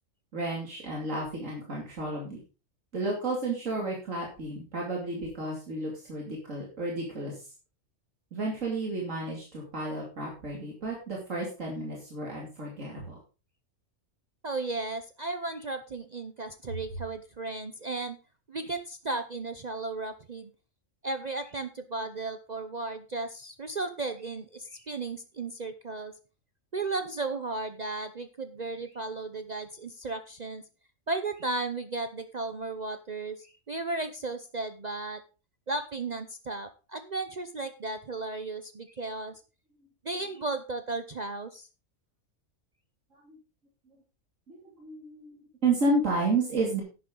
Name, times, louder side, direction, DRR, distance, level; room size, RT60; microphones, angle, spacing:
voice 1, 0.3-2.4 2.9-7.5 8.3-13.2 43.1-43.4 44.5-46.8, right 2 dB, 75° right, -2 dB, 3.0 m, -32 dB
voice 2, 14.4-18.2 18.5-20.5 21.0-26.1 26.7-30.6 31.1-35.2 35.7-39.4 40.0-41.7, right 3 dB, 40° right, 9 dB, 0.7 m, -35 dB
11.0 x 9.5 x 3.8 m, 0.33 s
omnidirectional pair, 1.3 m